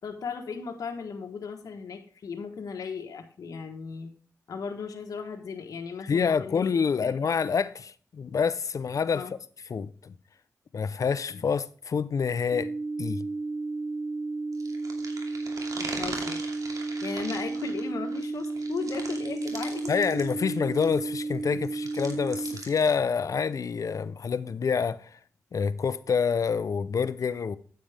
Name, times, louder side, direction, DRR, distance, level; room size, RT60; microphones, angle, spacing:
voice 1, 0.0-4.1 4.5-6.7 7.0-7.4 9.1-9.3 15.7-16.5 17.0-19.9, left 5 dB, 85° left, 1.3 m, -36 dB
voice 2, 6.1-9.2 9.7-10.1 10.7-12.7 13.0-13.2 19.9-25.1 25.5-27.6, left 6 dB, 65° left, 0.7 m, -27 dB
sound 1, 12.5-22.5, right 3 dB, 20° right, 3.1 m, -33 dB
sound 2, 14.5-21.0 21.3-22.9, right 3 dB, 75° right, 2.6 m, -41 dB
9.3 x 8.8 x 3.4 m
cardioid pair, 75°, 6 cm